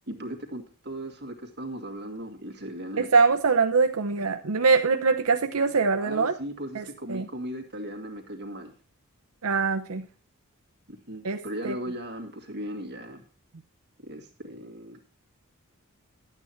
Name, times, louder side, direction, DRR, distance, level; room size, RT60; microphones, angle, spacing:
voice 1, 0.1-3.0 6.0-8.7 10.9-13.2 14.0-15.0, equal, 50° right, 5 dB, 2.0 m, -37 dB
voice 2, 3.0-6.3 6.7-7.3 9.4-10.0 11.2-11.4 11.6-11.8, right 4 dB, 80° right, 5 dB, 0.8 m, -23 dB
12.0 x 8.8 x 4.4 m, 0.38 s
head